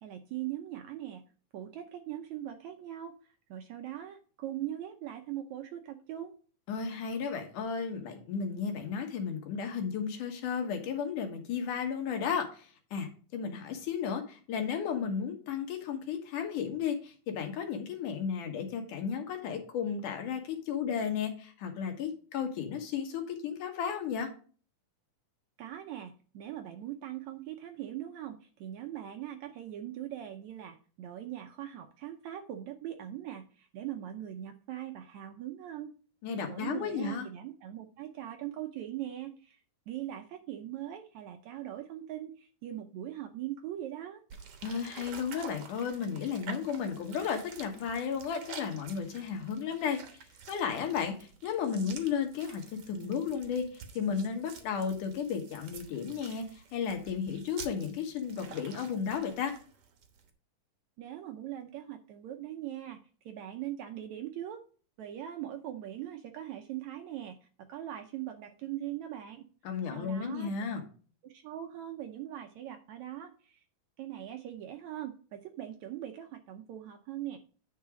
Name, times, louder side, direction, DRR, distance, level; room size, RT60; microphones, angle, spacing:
voice 1, 0.0-1.2 1.5-6.4 25.6-35.9 36.5-39.6 39.9-44.2 61.0-63.0 63.3-64.6 65.0-67.4 67.7-69.4 69.8-70.5 71.2-73.6 74.0-77.4, right 12 dB, 75° right, 5 dB, 1.8 m, -41 dB
voice 2, 6.7-24.3 36.2-37.3 44.6-50.0 50.5-59.5 69.6-70.8, left 7 dB, 70° left, 4 dB, 2.7 m, -34 dB
sound 1, 44.3-60.3, right 6 dB, 55° right, 1.8 m, -49 dB
9.8 x 4.8 x 5.0 m, 0.40 s
omnidirectional pair, 3.9 m